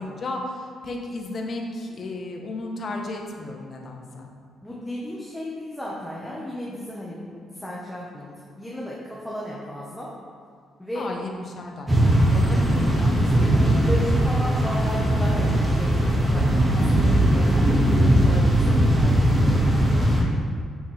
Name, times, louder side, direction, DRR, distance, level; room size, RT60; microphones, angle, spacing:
voice 1, 0.0-4.3 10.9-13.9, left 2 dB, 50° left, 1 dB, 1.4 m, -34 dB
voice 2, 4.6-8.3 8.5-10.1 10.8-11.1 12.6-12.7 13.6-19.7, left 1 dB, 5° left, -6 dB, 1.5 m, -34 dB
sound 1, 11.9-20.2, right 1 dB, 15° right, 2.1 m, -19 dB
9.2 x 6.3 x 3.6 m, 2.2 s
cardioid pair, 90°, 0 cm